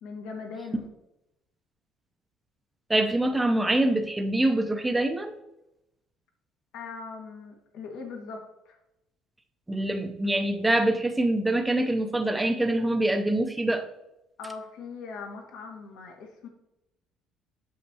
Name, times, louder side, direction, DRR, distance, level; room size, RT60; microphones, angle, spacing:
voice 1, 0.0-0.9 6.7-8.8 14.4-16.5, left 4 dB, 75° left, 2 dB, 1.9 m, -40 dB
voice 2, 2.9-5.4 9.7-13.9, right 1 dB, 10° right, 6 dB, 0.7 m, -25 dB
8.4 x 6.5 x 2.9 m, 0.88 s
cardioid pair, 140°, 0 cm